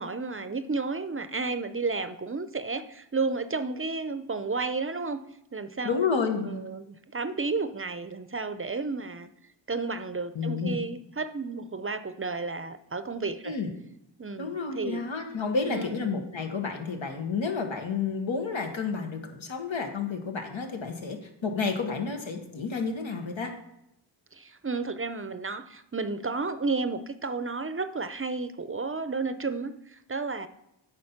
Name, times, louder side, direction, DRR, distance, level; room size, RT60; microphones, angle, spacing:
voice 1, 0.0-5.2 5.5-6.0 6.4-9.3 9.7-13.6 14.2-15.0 15.6-16.1 24.3-30.5, right 4 dB, 30° right, 11 dB, 0.5 m, -32 dB
voice 2, 5.8-6.7 10.3-10.8 13.4-13.7 14.4-23.5, left 5 dB, 90° left, 4 dB, 1.3 m, -30 dB
9.6 x 4.1 x 5.8 m, 0.82 s
wide cardioid pair, 60°, 45 cm